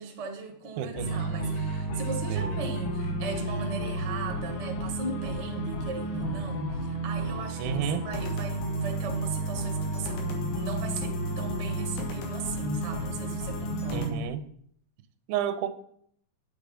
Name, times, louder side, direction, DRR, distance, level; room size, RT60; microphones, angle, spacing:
voice 1, 0.0-14.3, right 3 dB, 45° right, 0.8 m, -37 dB
voice 2, 0.8-1.2 2.3-2.6 7.6-8.0 13.9-14.4 15.3-15.7, right 9 dB, 90° right, 2.7 m, -31 dB
sound 1, 1.0-14.1, right 1 dB, 90° left, 3.6 m, -32 dB
9.0 x 8.1 x 5.0 m
omnidirectional pair, 4.2 m